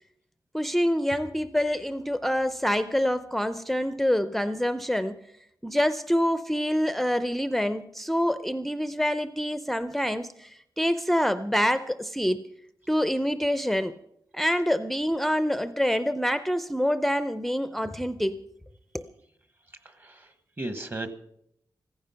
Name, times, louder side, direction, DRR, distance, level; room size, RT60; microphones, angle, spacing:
voice 1, 0.5-5.2 5.6-12.4 12.9-13.9 14.3-18.4 18.9-19.0, equal, ahead, 12 dB, 0.5 m, -26 dB
voice 2, 19.8-20.3 20.6-21.2, right 2 dB, 25° right, 10 dB, 1.2 m, -35 dB
15.5 x 15.0 x 5.7 m, 0.75 s
wide cardioid pair, 155°, 8 cm